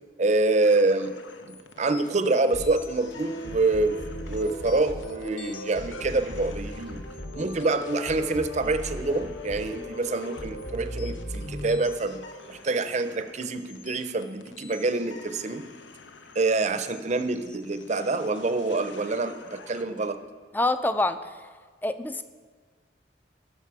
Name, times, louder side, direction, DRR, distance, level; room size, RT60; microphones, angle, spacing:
voice 1, 0.2-1.1 1.5-7.0 7.3-15.6 16.3-20.2, right 3 dB, 40° right, 10 dB, 0.6 m, -26 dB
sound 1, 0.6-20.1, left 5 dB, 85° left, 0.8 m, -49 dB
sound 2, 2.5-12.6, equal, 60° left, 1.2 m, -38 dB
voice 2, 20.5-21.3 21.8-22.2, left 2 dB, 10° left, 11 dB, 0.3 m, -26 dB
15.0 x 6.5 x 4.8 m, 1.5 s
head